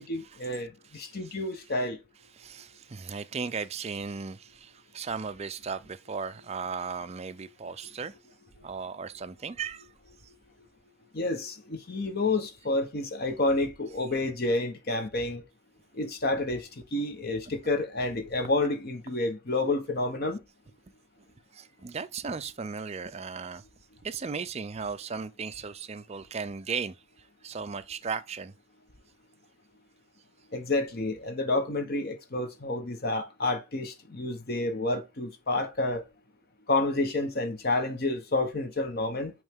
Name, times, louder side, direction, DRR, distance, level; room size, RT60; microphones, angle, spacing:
voice 1, 0.0-2.0 11.1-15.4 16.0-20.4 30.5-36.0 36.7-39.3, left 2 dB, 45° left, 0.9 m, -29 dB
voice 2, 0.9-1.4 2.3-8.1 8.6-9.9 21.5-23.6 24.0-26.9 27.4-28.5, right 5 dB, 30° right, 0.4 m, -36 dB
8.9 x 3.2 x 3.6 m
head